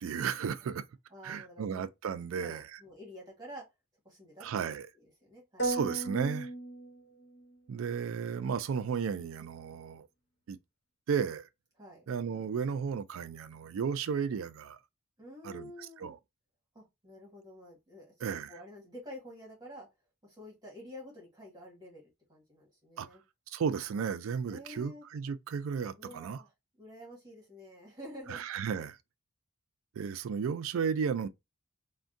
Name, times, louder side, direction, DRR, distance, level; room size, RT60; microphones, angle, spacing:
voice 1, 0.0-0.8 1.2-2.6 4.4-4.9 5.6-6.5 7.7-10.1 10.5-10.6 11.1-11.4 12.1-14.8 15.4-15.6 16.0-16.2 18.2-18.5 23.0-23.1 23.5-26.4 28.3-28.9 30.0-31.3, right 6 dB, 65° right, 0.3 m, -34 dB
voice 2, 1.1-1.8 2.3-3.7 4.0-5.7 11.8-12.1 15.2-16.2 16.7-19.9 20.2-23.2 24.4-25.0 26.0-26.5 26.8-28.4 28.7-28.8, equal, 20° right, 1.3 m, -49 dB
sound 1, 5.6-7.6, right 2 dB, 55° left, 1.1 m, -35 dB
3.4 x 2.2 x 2.6 m
head